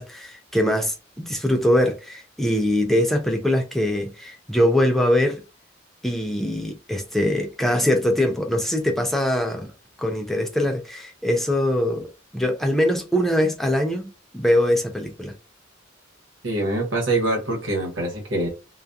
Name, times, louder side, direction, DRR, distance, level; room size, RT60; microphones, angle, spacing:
voice 1, 0.0-5.4 6.0-9.7 10.0-15.3, left 1 dB, ahead, 0.3 m, -22 dB
voice 2, 16.4-18.5, right 2 dB, 70° right, 1.1 m, -24 dB
2.3 x 2.3 x 2.6 m
head